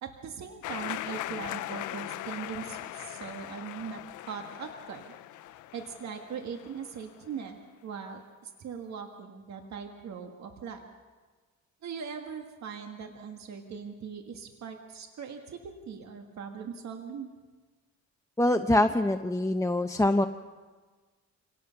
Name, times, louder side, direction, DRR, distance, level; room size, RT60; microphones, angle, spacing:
voice 1, 0.0-4.0 4.3-5.2 5.7-10.9 11.8-17.3, right 6 dB, 65° right, 4 dB, 1.8 m, -40 dB
sound 1, 0.6-7.3, left 14 dB, 80° left, 0.7 m, -40 dB
voice 2, 18.4-20.3, left 1 dB, 10° left, 6 dB, 0.8 m, -24 dB
27.0 x 18.0 x 5.9 m, 1.4 s
cardioid pair, 90°, 30 cm